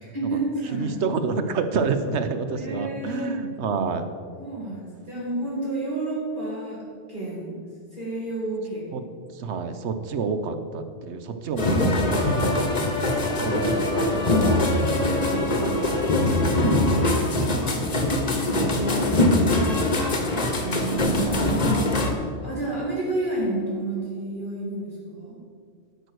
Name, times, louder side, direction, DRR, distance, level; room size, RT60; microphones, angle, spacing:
voice 1, 0.0-1.0 2.5-3.4 4.4-6.8 7.1-7.6 7.9-9.0 18.4-21.3 22.4-25.4, right 2 dB, 40° right, -9 dB, 2.5 m, -30 dB
voice 2, 0.8-4.1 8.9-9.0 9.3-12.9 13.4-18.1 19.8-20.0 21.1-21.4, right 4 dB, 70° right, 9 dB, 1.0 m, -29 dB
sound 1, 11.6-22.1, left 1 dB, 35° left, 1.0 m, -22 dB
12.0 x 4.6 x 6.4 m, 2.2 s
omnidirectional pair, 1.2 m